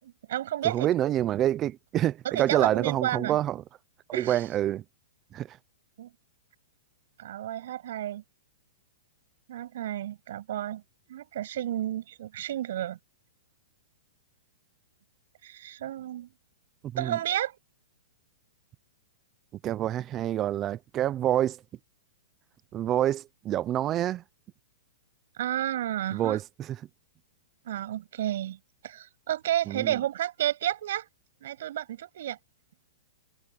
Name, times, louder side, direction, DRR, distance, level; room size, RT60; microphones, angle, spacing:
voice 1, 0.0-0.9 2.2-3.4 4.1-4.4 6.0-6.1 7.2-8.2 9.5-10.8 11.1-13.0 15.4-16.3 17.0-17.6 25.4-26.4 27.6-28.6 28.8-31.1 31.4-32.4, right 12 dB, 60° right, 7.7 m, -31 dB
voice 2, 0.6-3.6 4.1-4.8 5.3-5.6 16.9-17.2 19.6-21.6 22.7-24.2 26.1-26.8 29.7-30.0, right 12 dB, 20° right, 0.5 m, -27 dB
hypercardioid pair, 155°, 0 cm